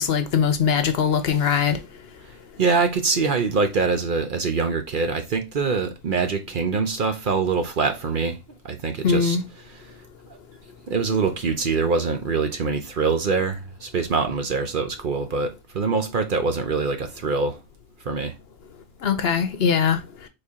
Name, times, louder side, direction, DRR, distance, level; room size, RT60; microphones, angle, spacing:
voice 1, 0.0-1.8 9.0-9.4 19.0-20.0, left 7 dB, 65° left, 0.9 m, -21 dB
voice 2, 2.6-8.4 8.6-9.4 10.9-17.6 18.0-18.3, right 4 dB, 50° right, 0.8 m, -24 dB
4.4 x 3.4 x 3.6 m
omnidirectional pair, 1.2 m